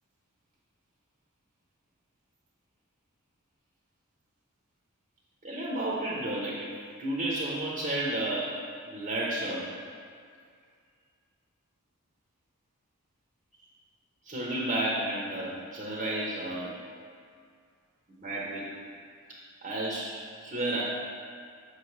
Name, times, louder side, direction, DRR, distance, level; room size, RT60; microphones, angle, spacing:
voice 1, 5.4-6.7 7.0-8.5 8.9-9.7 14.2-16.8 18.2-18.7 19.3-20.8, right 1 dB, 35° right, -5 dB, 0.8 m, -32 dB
6.2 x 3.2 x 5.8 m, 2.2 s
head